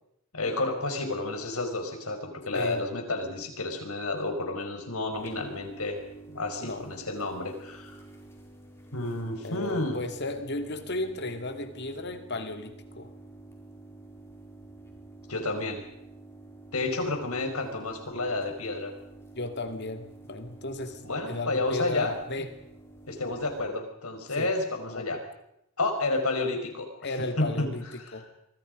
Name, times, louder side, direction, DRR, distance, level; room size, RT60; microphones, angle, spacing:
voice 1, 0.3-6.0 6.3-7.9 8.9-10.0 15.3-15.8 16.7-18.9 21.0-22.1 23.1-25.2 25.8-26.9 27.4-27.7 28.1-28.2, left 2 dB, 80° left, 5 dB, 5.3 m, -30 dB
sound 1, 5.1-23.7, right 2 dB, 10° left, 4.4 m, -49 dB
voice 2, 9.4-13.1 19.4-21.0 21.3-22.5 24.4-24.5 24.9-25.2 27.0-28.2, left 2 dB, 50° left, 7 dB, 2.5 m, -34 dB
26.5 x 24.0 x 5.3 m, 0.81 s
head